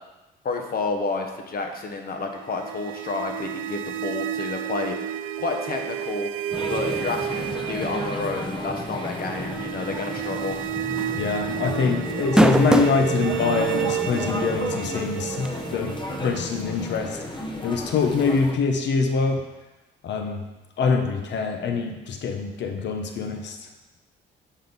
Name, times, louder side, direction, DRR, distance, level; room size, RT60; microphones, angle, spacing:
voice 1, 0.4-5.0 5.4-6.3 6.7-10.6, left 3 dB, 50° left, 3 dB, 1.1 m, -30 dB
sound 1, 2.3-17.3, right 12 dB, 75° right, 0.4 m, -32 dB
sound 2, 6.5-18.5, left 1 dB, 25° left, 0.9 m, -33 dB
sound 3, 10.4-10.6 11.0-11.1 12.1-13.0 13.8-13.9 15.5-15.6, right 1 dB, 5° right, 0.3 m, -18 dB
voice 2, 11.1-17.2 17.6-19.4 20.0-20.4 20.8-23.6, left 4 dB, 65° left, 4 dB, 0.8 m, -24 dB
6.4 x 5.2 x 4.0 m, 1.1 s
cardioid pair, 90°, 20 cm